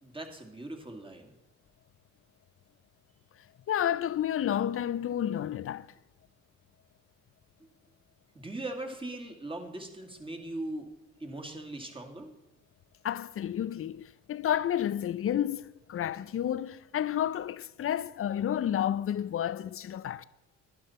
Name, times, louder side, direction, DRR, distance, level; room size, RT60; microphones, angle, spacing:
voice 1, 0.0-1.3 7.6-7.7 8.3-10.9 11.2-12.3, right 2 dB, 15° right, 2.3 m, -40 dB
voice 2, 3.7-5.9 13.0-20.2, left 10 dB, 45° left, 0.6 m, -31 dB
11.5 x 10.5 x 4.3 m
cardioid pair, 80°, 30 cm